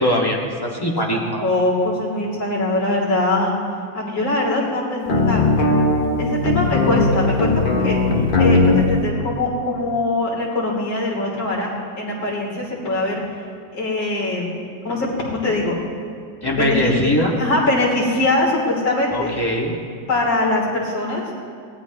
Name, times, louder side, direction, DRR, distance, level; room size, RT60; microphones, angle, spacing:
voice 1, 0.0-1.4 16.4-17.3 19.1-19.7, equal, 10° left, -2 dB, 1.7 m, -21 dB
voice 2, 1.1-3.5 3.9-5.4 6.2-7.5 7.8-8.0 8.4-13.2 13.7-14.5 14.8-15.8 16.5-17.1 17.4-19.4 20.1-21.3, left 2 dB, 90° left, -4 dB, 4.0 m, -22 dB
sound 1, 5.1-8.9, left 2 dB, 35° left, 1.0 m, -18 dB
23.0 x 18.0 x 3.0 m, 2.3 s
omnidirectional pair, 2.1 m